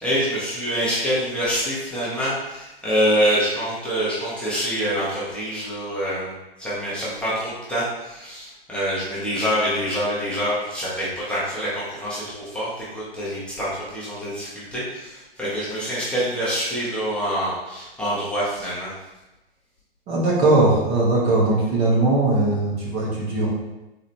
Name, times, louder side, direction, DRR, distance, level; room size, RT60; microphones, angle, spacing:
voice 1, 0.0-6.3 6.6-18.9, equal, 5° left, -10 dB, 1.1 m, -26 dB
voice 2, 20.1-23.5, right 2 dB, 20° right, -6 dB, 1.1 m, -19 dB
4.0 x 3.9 x 3.2 m, 0.98 s
figure-of-eight pair, 115°, 30 cm